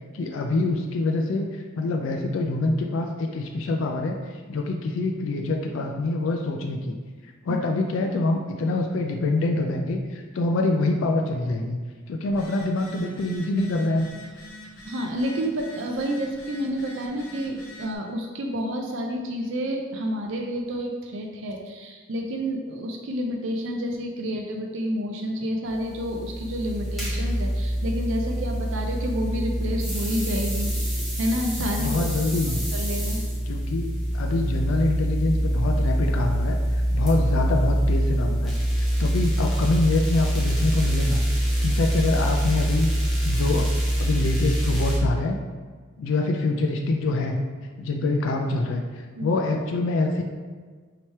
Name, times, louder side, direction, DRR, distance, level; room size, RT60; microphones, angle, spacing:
voice 1, 0.1-7.0 7.5-11.8 12.1-14.1 31.8-32.6 33.5-38.5 39.0-41.2 41.6-42.9 43.2-43.7 44.0-45.4 46.0-47.4 47.8-50.2, left 2 dB, 65° left, 2 dB, 0.3 m, -25 dB
Telephone, 12.3-17.9, left 1 dB, 90° left, 0.9 m, -44 dB
voice 2, 14.8-32.1 32.7-33.2 49.2-49.3, equal, 60° right, 2 dB, 0.4 m, -29 dB
sound 1, 25.7-45.0, equal, ahead, 0.8 m, -25 dB
3.2 x 2.8 x 4.4 m, 1.5 s
head